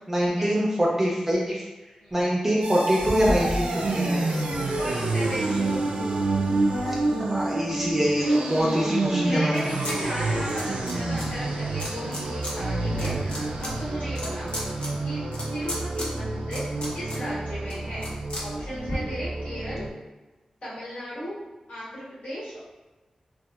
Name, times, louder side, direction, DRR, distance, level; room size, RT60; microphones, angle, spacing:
voice 1, 0.0-1.7 2.1-4.2 7.2-9.6, equal, 15° right, -4 dB, 0.4 m, -24 dB
sound 1, 2.6-19.9, right 2 dB, 85° right, 0.3 m, -28 dB
sound 2, 3.0-8.1 8.6-10.0 10.2-11.3 11.8-12.5 12.9-19.0, equal, 55° left, 0.6 m, -35 dB
voice 2, 4.8-5.8 9.2-14.5 15.0-15.2 15.5-16.6 16.9-18.1 18.4-19.8 20.6-21.4 21.7-22.6, equal, 80° left, -10 dB, 1.2 m, -36 dB
2.8 x 2.2 x 2.2 m, 1.2 s
wide cardioid pair, 120°, 2 cm